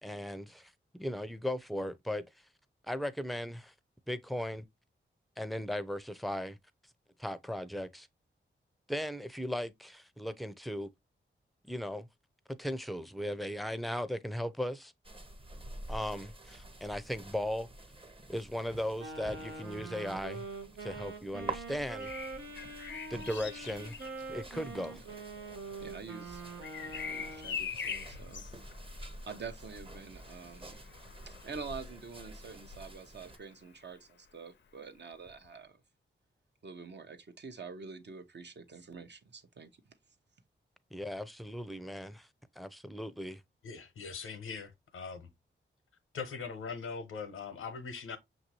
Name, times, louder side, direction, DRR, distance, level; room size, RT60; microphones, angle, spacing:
voice 1, 0.0-2.2 2.9-3.7 4.1-4.6 5.4-6.6 7.2-8.1 8.9-10.9 11.6-12.1 12.6-14.9 15.9-17.7 18.3-20.4 20.8-22.1 23.1-24.0 24.3-25.0 40.9-42.3 42.6-43.4, equal, ahead, 0.5 m, -37 dB
sound 1, 15.0-33.4, right 2 dB, 25° right, 0.8 m, -48 dB
Wind instrument woodwind instrument, 19.0-27.6, right 3 dB, 85° right, 0.8 m, -44 dB
Bird vocalization bird call bird song, 21.7-33.5 35.3-35.5, left 6 dB, 60° left, 0.5 m, -45 dB
voice 2, 25.8-26.4 26.8-28.4 29.1-30.8 31.3-35.8 36.6-39.7, right 5 dB, 55° right, 0.8 m, -46 dB
voice 3, 43.6-45.3 46.1-48.2, left 5 dB, 90° left, 0.8 m, -41 dB
5.9 x 2.6 x 2.9 m
cardioid pair, 50°, 21 cm